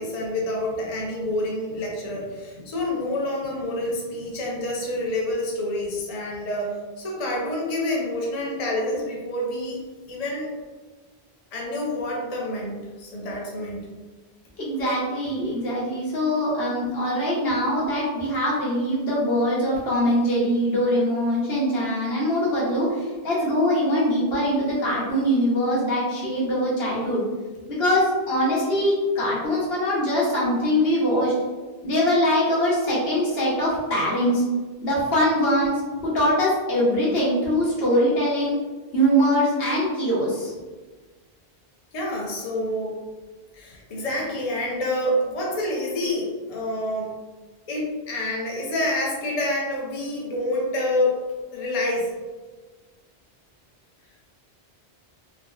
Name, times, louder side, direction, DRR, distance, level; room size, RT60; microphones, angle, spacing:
voice 1, 0.0-9.8 10.1-10.5 11.5-13.9 41.9-43.0 43.5-47.2 47.7-51.2 51.5-52.1, left 1 dB, 45° left, -3 dB, 0.6 m, -27 dB
voice 2, 14.6-27.2 27.7-31.3 31.8-34.4 34.8-38.6 38.9-40.5, equal, 70° left, -6 dB, 1.1 m, -22 dB
3.5 x 2.0 x 2.3 m, 1.3 s
omnidirectional pair, 1.1 m